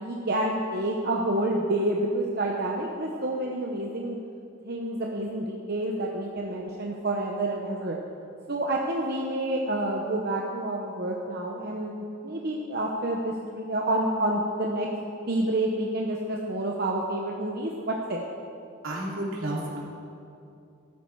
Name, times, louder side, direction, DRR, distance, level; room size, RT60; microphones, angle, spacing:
voice 1, 0.0-4.2 4.6-8.0 8.5-14.9 15.3-18.2, right 1 dB, 50° right, -1 dB, 1.0 m, -28 dB
voice 2, 18.8-19.8, right 1 dB, 80° right, -3 dB, 3.0 m, -31 dB
14.0 x 13.0 x 4.7 m, 2.6 s
head